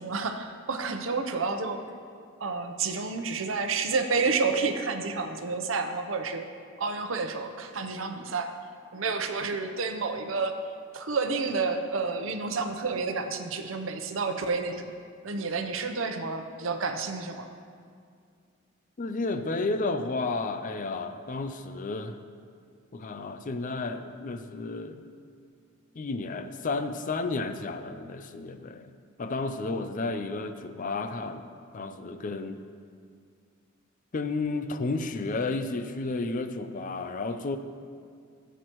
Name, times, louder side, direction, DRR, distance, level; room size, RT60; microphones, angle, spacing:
voice 1, 0.0-1.8 2.4-6.5 6.8-8.5 8.9-10.5 10.9-14.9 15.2-17.5, right 4 dB, 75° right, 6 dB, 0.7 m, -30 dB
voice 2, 19.0-22.2 22.9-25.0 25.9-28.9 29.2-32.6 34.1-37.6, left 3 dB, 40° left, 9 dB, 0.5 m, -32 dB
15.0 x 8.0 x 3.0 m, 2.2 s
head